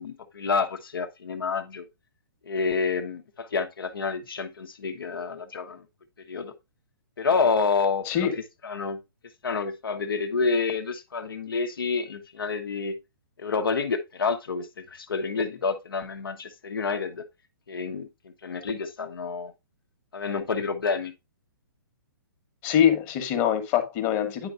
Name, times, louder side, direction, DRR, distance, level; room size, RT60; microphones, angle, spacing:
voice 1, 0.0-1.8 2.5-5.8 6.3-6.5 7.2-8.1 8.6-9.0 9.4-13.0 13.4-17.2 17.7-18.1 18.4-19.5 20.1-21.1, left 4 dB, 70° left, 1.1 m, -28 dB
voice 2, 22.6-24.5, left 9 dB, 30° left, 1.3 m, -23 dB
10.0 x 4.4 x 2.5 m
figure-of-eight pair, 125°, 12 cm